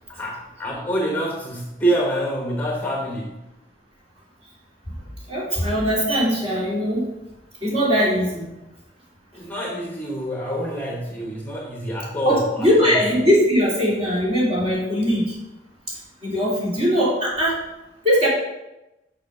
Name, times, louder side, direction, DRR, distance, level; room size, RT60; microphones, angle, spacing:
voice 1, 0.1-3.4 9.3-13.0, right 1 dB, 10° left, -1 dB, 1.0 m, -26 dB
voice 2, 5.3-7.0 7.6-8.5 12.2-15.4 16.2-17.6 18.0-18.3, equal, 35° right, -6 dB, 2.9 m, -20 dB
6.8 x 5.6 x 5.3 m, 0.98 s
head